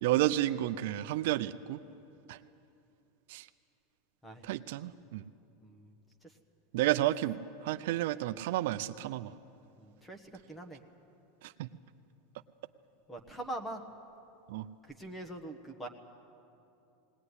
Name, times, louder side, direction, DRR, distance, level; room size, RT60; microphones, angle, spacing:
voice 1, 0.0-1.8 2.3-2.4 3.3-3.5 4.4-5.3 6.7-9.3 11.4-11.7 14.5-14.7, right 15 dB, 65° right, 11 dB, 0.5 m, -31 dB
voice 2, 5.6-6.0 6.2-6.3 9.8-10.8 13.1-13.8 14.8-15.9, right 1 dB, 10° left, 6 dB, 1.3 m, -43 dB
19.5 x 18.5 x 9.8 m, 2.7 s
supercardioid pair, 165°, 0 cm